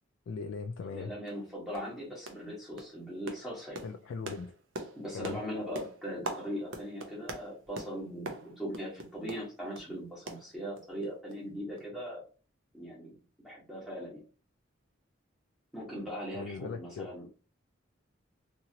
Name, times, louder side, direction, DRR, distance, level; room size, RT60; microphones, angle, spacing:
voice 1, 0.3-1.1 3.8-4.5 5.1-5.4 16.3-17.1, left 5 dB, 80° left, 0.3 m, -39 dB
sound 1, 0.8-0.9 1.3-1.4 1.7-2.0 2.3-2.5 2.8-9.9 10.3-11.0 11.3-11.4 11.8-11.9, right 2 dB, 80° right, 0.6 m, -43 dB
voice 2, 0.9-3.8 5.0-12.2 12.7-14.2 15.7-17.3, equal, ahead, 1.3 m, -40 dB
2.8 x 2.5 x 2.8 m
head